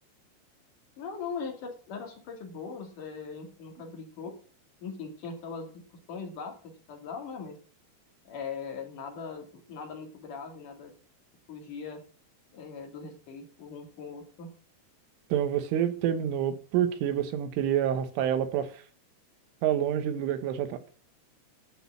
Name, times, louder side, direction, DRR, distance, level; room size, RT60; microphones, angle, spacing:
voice 1, 1.0-4.4 4.8-5.8 6.1-7.6 8.2-10.9 11.5-12.0 12.5-14.5, left 5 dB, 50° left, 3.4 m, -40 dB
voice 2, 15.3-18.8 19.6-20.8, right 10 dB, 85° right, 3.6 m, -28 dB
12.0 x 6.3 x 7.2 m
omnidirectional pair, 5.5 m